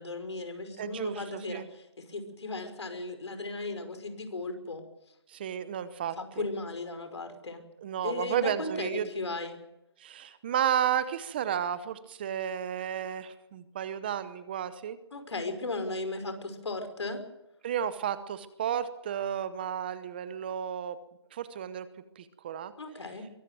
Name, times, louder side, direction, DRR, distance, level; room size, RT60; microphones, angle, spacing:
voice 1, 0.0-4.8 6.2-7.6 8.0-9.6 15.1-17.2 22.8-23.3, left 2 dB, 80° left, 8 dB, 5.5 m, -36 dB
voice 2, 0.8-1.7 5.3-6.4 7.8-9.1 10.0-15.0 17.6-21.0 21.3-21.9 22.2-22.7, right 9 dB, 20° right, 14 dB, 0.8 m, -32 dB
23.0 x 16.0 x 7.7 m, 0.86 s
hypercardioid pair, 170°, 14 cm